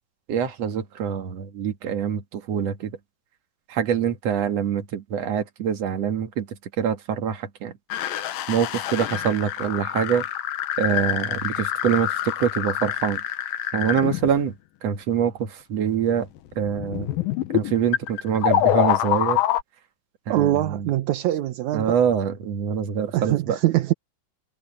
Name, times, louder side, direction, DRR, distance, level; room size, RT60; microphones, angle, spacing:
voice 1, 0.3-3.0 3.7-7.7 8.5-10.3 10.8-13.2 13.7-14.5 14.8-16.3 16.6-17.1 17.5-19.4 20.3-20.9 21.7-23.6, right 8 dB, 50° right, 2.6 m, -25 dB
sound 1, 7.9-14.4 16.6-19.6, left 12 dB, 75° left, 2.9 m, -26 dB
voice 2, 20.3-22.0 23.1-23.9, right 14 dB, 70° right, 1.9 m, -23 dB
omnidirectional pair, 4.1 m